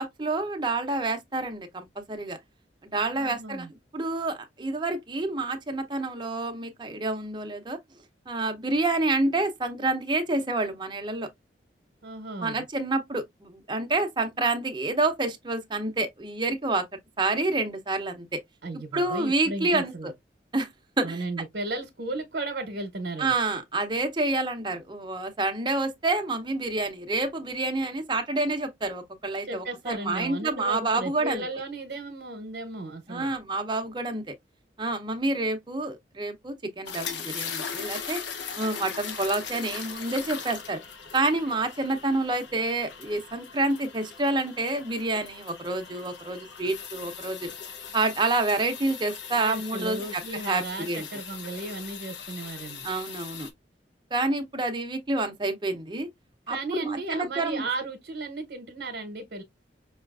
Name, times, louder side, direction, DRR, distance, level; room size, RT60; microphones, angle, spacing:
voice 1, 0.0-2.4 2.9-7.8 8.3-11.3 12.4-16.9 17.2-18.4 18.7-20.1 20.5-20.7 21.0-21.2 23.2-31.4 33.1-34.3 34.8-38.2 38.6-40.8 41.1-47.5 47.9-51.1 52.8-53.5 54.1-56.1 56.5-57.6, right 2 dB, 25° right, 0.6 m, -28 dB
voice 2, 3.1-3.7 12.0-12.6 18.6-20.1 21.0-23.3 29.4-33.3 49.4-52.9 56.5-59.4, right 2 dB, 70° right, 0.8 m, -35 dB
sound 1, 36.9-53.5, left 6 dB, 85° left, 0.7 m, -39 dB
5.4 x 2.4 x 2.3 m
head